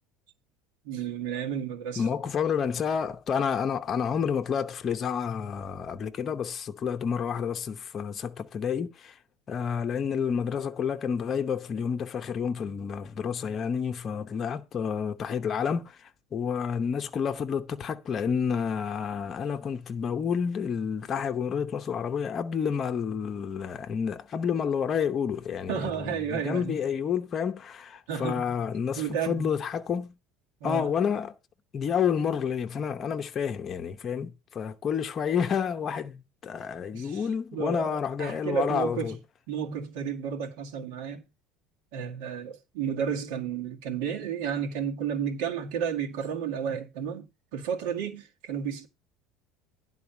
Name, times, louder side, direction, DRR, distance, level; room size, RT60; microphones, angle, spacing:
voice 1, 0.8-2.1 25.7-26.8 28.1-28.6 29.0-29.5 30.6-30.9 36.9-39.2 39.5-41.2 41.9-48.9, right 7 dB, 85° right, 2.2 m, -32 dB
voice 2, 2.0-9.2 9.5-30.1 30.6-31.3 31.7-39.2, left 7 dB, 25° left, 0.8 m, -29 dB
10.5 x 4.0 x 7.1 m
cardioid pair, 165°, 0 cm